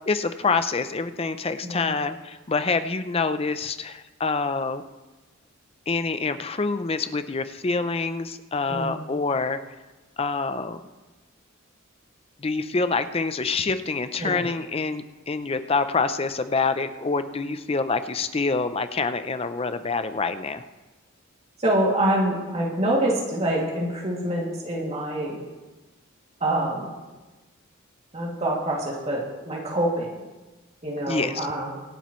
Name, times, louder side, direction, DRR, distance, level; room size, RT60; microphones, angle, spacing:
voice 1, 0.1-4.8 5.9-9.6 10.2-10.8 12.4-20.6 31.1-31.4, left 4 dB, 30° left, 11 dB, 0.5 m, -26 dB
voice 2, 1.6-1.9 8.7-9.0 14.2-14.5 21.6-25.4 26.4-26.9 28.1-30.2 30.8-31.8, right 1 dB, 30° right, -3 dB, 2.4 m, -26 dB
25.0 x 8.4 x 3.1 m, 1.2 s
head